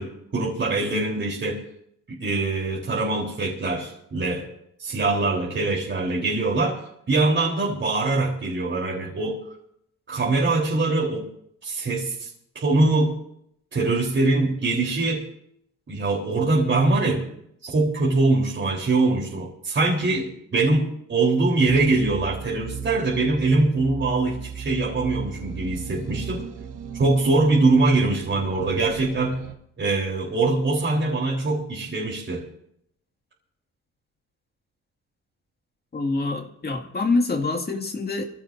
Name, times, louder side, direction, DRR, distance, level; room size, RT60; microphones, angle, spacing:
voice 1, 0.0-1.6 2.1-4.5 4.8-6.8 7.1-9.4 10.1-11.3 11.6-12.3 12.6-13.2 13.7-15.2 15.9-17.3 17.6-26.5 26.9-29.4 29.8-32.4, right 3 dB, 40° right, -4 dB, 3.8 m, -23 dB
sound 1, 21.7-29.6, right 7 dB, 90° right, 1.3 m, -37 dB
voice 2, 35.9-38.2, left 3 dB, 30° left, 3 dB, 2.1 m, -25 dB
24.5 x 15.5 x 2.7 m, 0.74 s
cardioid pair, 90°, 30 cm